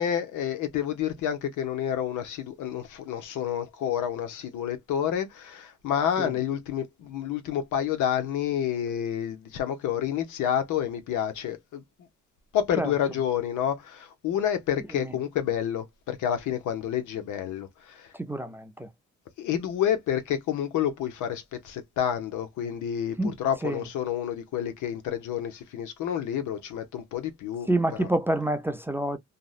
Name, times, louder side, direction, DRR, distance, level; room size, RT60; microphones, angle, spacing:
voice 1, 0.0-11.8 12.5-18.1 19.4-27.7 28.0-28.1, left 9 dB, 80° left, 0.7 m, -29 dB
voice 2, 18.1-18.9 23.2-23.3 23.6-23.8 27.7-29.2, right 1 dB, 10° right, 0.3 m, -27 dB
2.6 x 2.0 x 2.4 m
cardioid pair, 90°, 30 cm